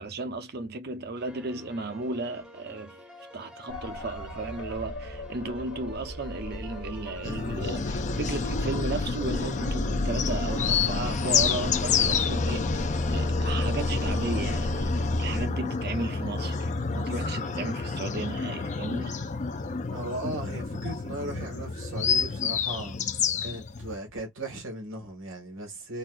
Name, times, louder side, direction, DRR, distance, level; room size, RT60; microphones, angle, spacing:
voice 1, 0.0-3.0 3.3-19.1, right 3 dB, 50° right, 0.7 m, -35 dB
sound 1, 1.2-15.5, left 1 dB, 5° right, 0.7 m, -49 dB
sound 2, 3.7-15.5, left 1 dB, 80° left, 1.1 m, -35 dB
sound 3, 7.2-24.0, left 5 dB, 35° left, 0.5 m, -29 dB
voice 2, 19.9-23.0 23.4-26.0, right 1 dB, 80° right, 1.7 m, -37 dB
4.1 x 2.3 x 2.4 m
head